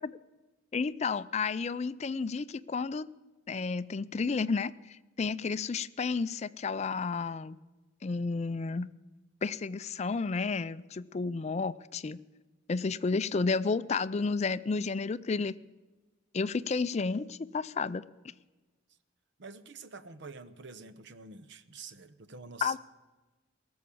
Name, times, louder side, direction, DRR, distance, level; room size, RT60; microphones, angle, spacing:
voice 1, 0.7-3.1 3.5-7.6 8.0-8.9 9.4-12.2 12.7-15.6 16.3-18.0 22.6-22.8, left 4 dB, 30° left, 16 dB, 0.4 m, -31 dB
voice 2, 19.4-22.8, right 4 dB, 55° right, 12 dB, 0.8 m, -47 dB
18.5 x 7.2 x 8.4 m, 1.2 s
head